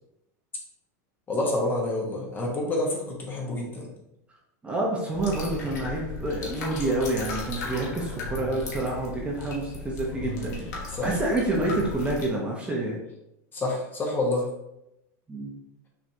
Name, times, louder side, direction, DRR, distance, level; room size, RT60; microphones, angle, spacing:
voice 1, 1.3-3.9 10.9-11.2 13.5-14.5, left 2 dB, 20° left, -1 dB, 1.1 m, -28 dB
voice 2, 4.6-13.0 15.3-15.5, right 2 dB, 10° right, -3 dB, 0.9 m, -28 dB
sound 1, 5.1-12.3, left 3 dB, 80° left, 1.4 m, -36 dB
6.0 x 3.2 x 2.7 m, 0.85 s
supercardioid pair, 140°, 9 cm